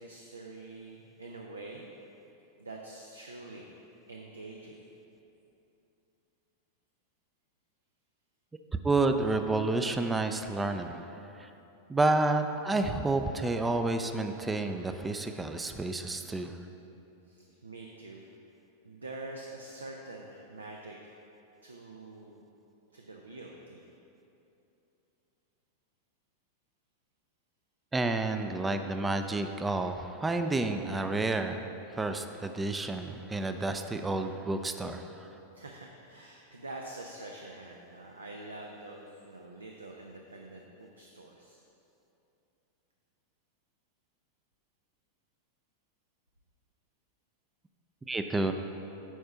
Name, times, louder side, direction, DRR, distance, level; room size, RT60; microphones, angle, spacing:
voice 1, 0.0-1.9 2.6-3.7 4.1-4.8 17.2-18.2 18.8-21.2 21.6-22.4 22.9-23.9 35.5-41.6, right 2 dB, 75° right, 1 dB, 0.6 m, -46 dB
voice 2, 8.8-11.1 11.4-11.5 11.9-16.5 27.9-31.6 32.0-35.1 48.1-48.5, right 2 dB, 10° right, 7 dB, 0.4 m, -30 dB
9.2 x 4.3 x 5.9 m, 2.9 s
figure-of-eight pair, 90°, 0 cm